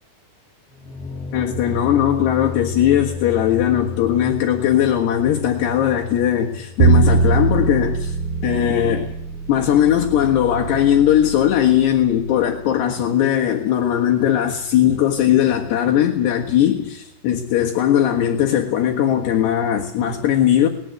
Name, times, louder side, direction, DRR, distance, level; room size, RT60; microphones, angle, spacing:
sound 1, 0.7-9.7, left 5 dB, 50° left, 1.1 m, -34 dB
voice 1, 1.3-8.2 8.4-9.1 9.5-20.7, left 10 dB, 75° left, 0 dB, 3.6 m, -19 dB
Bowed string instrument, 6.8-13.0, right 4 dB, 90° right, 3.5 m, -22 dB
20.0 x 15.0 x 9.3 m, 0.74 s
omnidirectional pair, 5.0 m